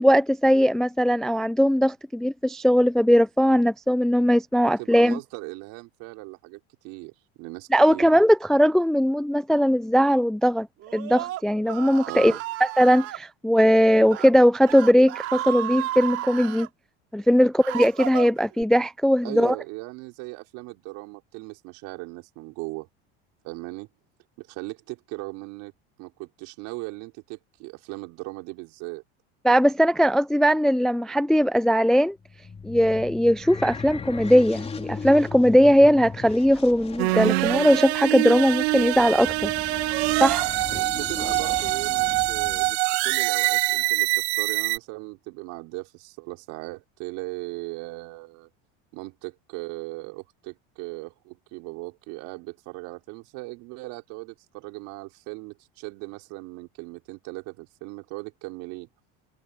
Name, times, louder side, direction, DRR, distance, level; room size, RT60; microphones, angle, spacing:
voice 1, 0.0-5.2 7.7-10.7 10.9-12.3 12.8-16.7 17.1-19.5 29.4-32.1 32.6-39.5 40.2-40.5, equal, ahead, 0.3 m, -19 dB
voice 2, 4.6-6.6 6.8-7.1 7.4-8.1 12.0-12.4 19.2-22.9 23.4-23.9 24.4-25.7 26.0-29.0 40.6-48.5 48.9-58.9, right 24 dB, 70° right, 5.4 m, -38 dB
Screaming, 10.8-13.2 14.0-14.3 14.6-16.7 17.2-18.6, right 15 dB, 50° right, 5.0 m, -33 dB
sound 1, 32.2-42.7, left 5 dB, 20° left, 3.9 m, -38 dB
sound 2, 37.0-44.8, right 22 dB, 90° right, 0.6 m, -24 dB
supercardioid pair, 125°, 31 cm